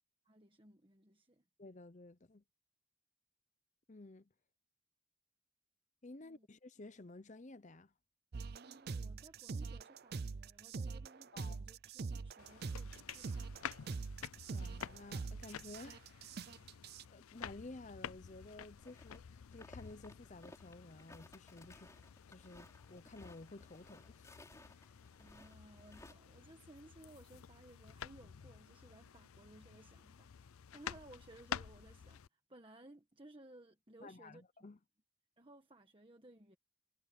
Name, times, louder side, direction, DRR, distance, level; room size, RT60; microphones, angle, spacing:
voice 1, 0.2-1.4 6.2-6.5 8.6-13.6 25.2-34.4 35.4-36.6, right 1 dB, 25° right, 1.5 m, -60 dB
voice 2, 1.6-2.4 3.9-4.3 6.0-7.9 11.3-11.6 14.5-16.5 17.1-21.9 22.3-24.4 24.8-25.0 34.0-34.8, left 2 dB, 35° left, 0.7 m, -53 dB
sound 1, 8.3-17.0, right 4 dB, 45° right, 0.5 m, -44 dB
sound 2, 12.4-32.3, left 8 dB, 80° left, 0.5 m, -51 dB
sound 3, 18.8-19.2 19.4-26.1, left 1 dB, 15° left, 5.0 m, -59 dB
head